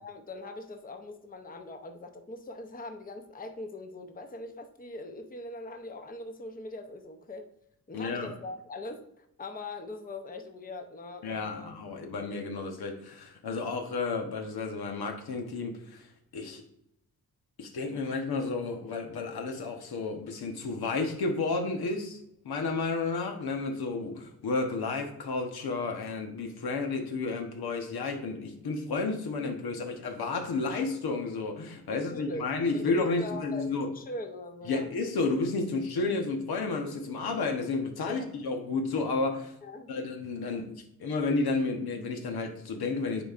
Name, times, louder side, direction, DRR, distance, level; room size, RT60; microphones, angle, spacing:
voice 1, 0.0-7.5 7.9-11.7 31.9-34.9 38.1-38.3 39.6-39.9, left 2 dB, 25° left, 6 dB, 0.7 m, -41 dB
voice 2, 7.9-8.3 11.2-16.1 16.3-16.6 17.6-22.2 22.4-33.9 34.7-39.5 39.9-43.2, left 3 dB, 90° left, 4 dB, 1.1 m, -31 dB
9.9 x 4.2 x 2.4 m, 0.79 s
wide cardioid pair, 120°, 36 cm